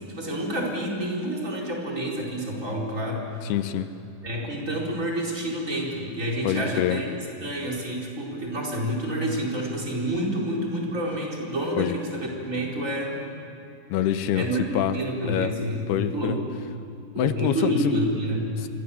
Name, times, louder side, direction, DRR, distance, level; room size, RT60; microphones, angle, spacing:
voice 1, 0.0-3.5 4.2-13.2 14.3-14.6 14.9-16.4 17.1-18.5, right 1 dB, 20° right, -2 dB, 4.5 m, -28 dB
voice 2, 3.4-3.9 6.4-7.0 11.8-12.0 13.9-14.5 14.7-15.0 15.3-15.5 15.9-16.4 17.2-18.0 18.6-18.7, left 11 dB, 85° left, 10 dB, 3.0 m, -25 dB
29.0 x 24.5 x 7.1 m, 2.7 s
omnidirectional pair, 4.5 m